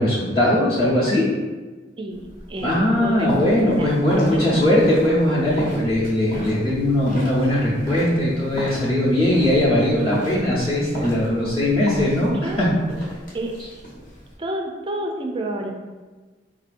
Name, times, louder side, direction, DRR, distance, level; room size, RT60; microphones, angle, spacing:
voice 1, 0.0-1.3 2.6-12.7, left 1 dB, 25° left, -10 dB, 0.8 m, -20 dB
voice 2, 2.0-3.3 3.8-4.6 12.3-12.6 13.3-13.6 14.4-15.7, right 1 dB, 25° right, 2 dB, 0.4 m, -30 dB
sound 1, 2.1-14.3, equal, 50° left, 1.0 m, -35 dB
4.7 x 2.7 x 2.5 m, 1.3 s
head